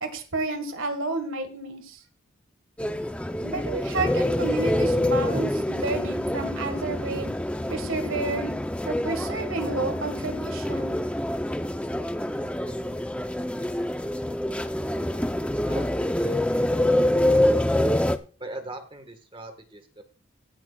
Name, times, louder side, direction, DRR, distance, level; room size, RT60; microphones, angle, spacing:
voice 1, 0.0-2.0 3.4-7.3 7.7-8.5 8.9-11.0, right 3 dB, 75° right, 8 dB, 1.6 m, -31 dB
sound 1, 2.8-18.2, left 1 dB, 5° left, 0.5 m, -26 dB
voice 2, 15.1-16.4 17.2-17.8 18.4-20.0, right 2 dB, 25° right, 8 dB, 1.4 m, -41 dB
16.0 x 10.5 x 2.3 m, 0.37 s
head